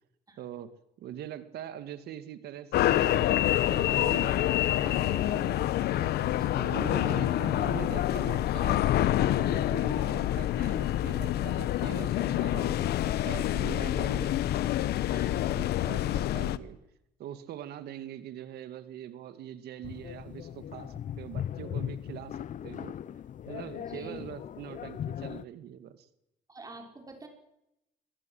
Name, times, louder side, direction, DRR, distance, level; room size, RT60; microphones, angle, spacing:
voice 1, 0.4-0.7 1.0-6.2 6.5-12.7 13.0-14.3 15.6-16.8 17.2-22.4 22.6-23.0 23.5-26.1, right 11 dB, 70° right, 11 dB, 2.3 m, -43 dB
sound 1, 2.7-16.6, left 13 dB, 70° left, 1.1 m, -27 dB
voice 2, 15.1-15.7 23.9-24.2 26.5-27.3, right 2 dB, 20° right, 3 dB, 5.4 m, -46 dB
sound 2, 19.8-25.4, left 9 dB, 50° left, 0.9 m, -38 dB
24.0 x 20.5 x 8.0 m, 0.86 s
cardioid pair, 110°, 17 cm